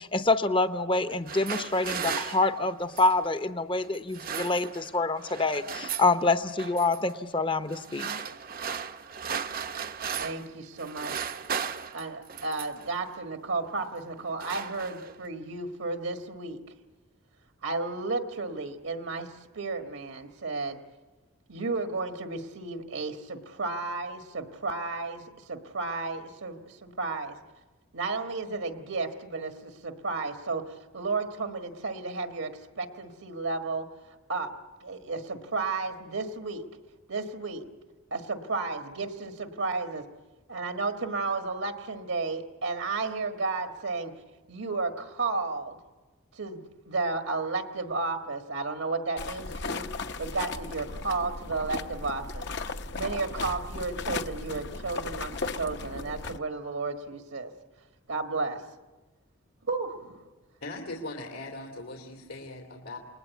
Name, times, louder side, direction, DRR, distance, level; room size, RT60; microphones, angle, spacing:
voice 1, 0.0-8.1, left 2 dB, 25° left, 10 dB, 0.8 m, -26 dB
sound 1, 1.1-3.3 3.9-5.0 5.2-6.2 6.6-7.0 7.7-10.5 10.8-12.9 13.7-13.9 14.2-15.3, right 7 dB, 40° right, 0.7 m, -36 dB
voice 2, 10.2-11.1 11.9-16.6 17.6-20.8 21.5-25.2 25.5-27.4 27.9-33.9 34.3-34.5 34.8-36.6 37.1-37.6 38.1-40.0 40.5-44.1 44.5-45.8 46.3-49.9 50.2-52.4 52.9-57.5 58.1-58.6 59.7-60.2, right 3 dB, 75° right, 5 dB, 1.6 m, -33 dB
sound 2, 49.2-56.4, left 3 dB, 55° left, 0.8 m, -36 dB
voice 3, 60.6-63.0, left 2 dB, 80° left, 0 dB, 2.9 m, -39 dB
29.0 x 20.5 x 8.3 m, 1.2 s
head